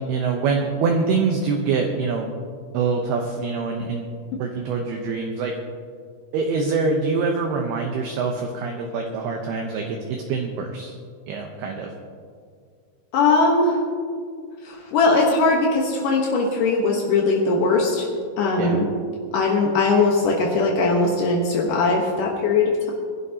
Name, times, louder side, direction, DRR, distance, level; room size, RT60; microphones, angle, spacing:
voice 1, 0.0-2.3 2.7-4.1 4.4-5.6 6.3-10.9 11.3-11.9 18.6-18.8, right 4 dB, 80° right, 2 dB, 2.3 m, -25 dB
voice 2, 13.1-13.8 14.6-18.1 18.4-18.9 19.3-22.9, left 3 dB, 85° left, -1 dB, 1.8 m, -20 dB
23.5 x 11.5 x 2.9 m, 2.1 s
omnidirectional pair, 5.7 m